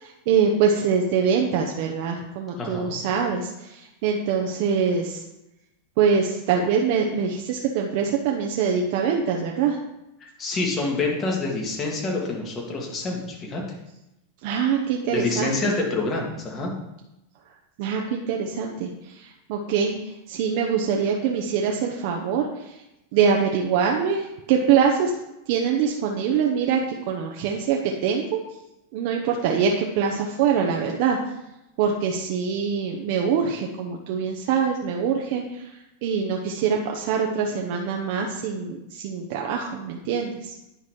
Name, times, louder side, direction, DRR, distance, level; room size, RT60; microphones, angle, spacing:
voice 1, 0.0-5.2 6.0-9.8 14.4-15.7 17.8-22.8 23.1-25.1 25.5-28.4 28.9-31.2 31.8-40.5, right 6 dB, 60° right, 1 dB, 0.9 m, -24 dB
voice 2, 2.6-3.0 10.2-13.6 15.1-16.7, left 3 dB, 25° left, 0 dB, 2.0 m, -27 dB
9.9 x 4.1 x 4.7 m, 0.92 s
supercardioid pair, 130°, 0 cm